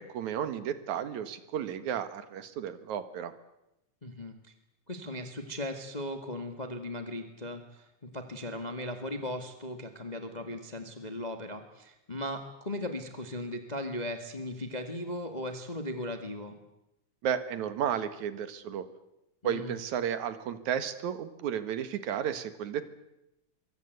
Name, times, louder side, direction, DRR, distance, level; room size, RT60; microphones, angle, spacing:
voice 1, 0.0-3.3 17.2-18.9 19.4-22.9, right 9 dB, 70° right, 12 dB, 2.9 m, -33 dB
voice 2, 4.0-4.4 4.9-16.6 19.4-19.7, left 1 dB, 15° left, 6 dB, 1.5 m, -37 dB
24.0 x 23.5 x 8.2 m, 0.89 s
omnidirectional pair, 3.5 m